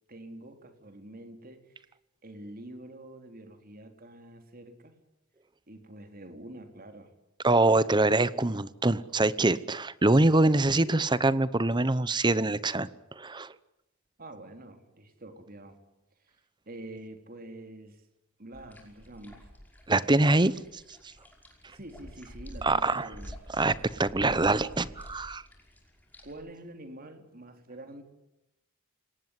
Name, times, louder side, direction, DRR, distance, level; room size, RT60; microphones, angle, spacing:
voice 1, 0.1-1.9 2.2-5.0 5.7-7.1 14.2-15.8 16.3-16.4 16.7-18.0 18.4-19.5 21.7-23.4 26.2-28.0, right 1 dB, 45° right, 6 dB, 3.6 m, -46 dB
voice 2, 7.4-12.9 13.2-13.5 19.9-20.5 22.6-23.1 23.6-25.4, right 2 dB, 20° right, 17 dB, 0.9 m, -24 dB
sound 1, 18.5-26.3, equal, 10° left, 5.5 m, -48 dB
28.0 x 18.5 x 9.7 m, 0.91 s
head